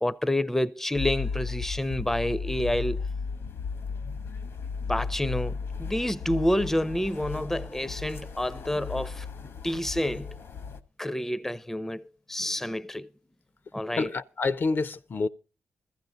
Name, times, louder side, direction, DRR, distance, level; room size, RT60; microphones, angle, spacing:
voice 1, 0.0-3.0 4.9-9.3 9.6-10.3 11.0-12.0 12.3-13.1 13.7-14.1, left 1 dB, 10° left, 0.6 m, -28 dB
sound 1, 0.9-10.8, left 5 dB, 75° left, 1.1 m, -35 dB
voice 2, 14.0-15.3, left 3 dB, 50° left, 0.6 m, -27 dB
15.0 x 14.5 x 3.9 m
cardioid pair, 55°, 4 cm